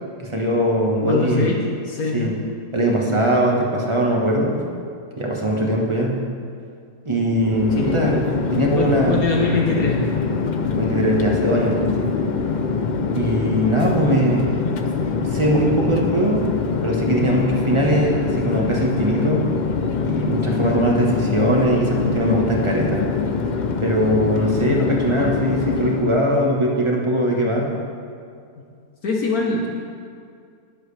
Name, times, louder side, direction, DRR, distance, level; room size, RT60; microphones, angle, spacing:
voice 1, 0.2-1.5 2.1-2.3 2.7-4.5 5.2-6.2 7.0-8.2 8.5-9.2 10.8-12.1 13.1-14.5 15.3-16.4 16.8-19.4 20.0-23.0 23.8-27.7, equal, 20° right, -2 dB, 1.4 m, -20 dB
voice 2, 1.0-1.5 1.9-2.3 7.7-7.9 8.7-10.0 29.0-29.7, left 3 dB, 65° left, -1 dB, 1.6 m, -22 dB
Chatter / Fixed-wing aircraft airplane, 7.3-26.3, left 5 dB, 85° left, 0.4 m, -24 dB
20.0 x 7.7 x 3.4 m, 2.3 s
omnidirectional pair, 1.7 m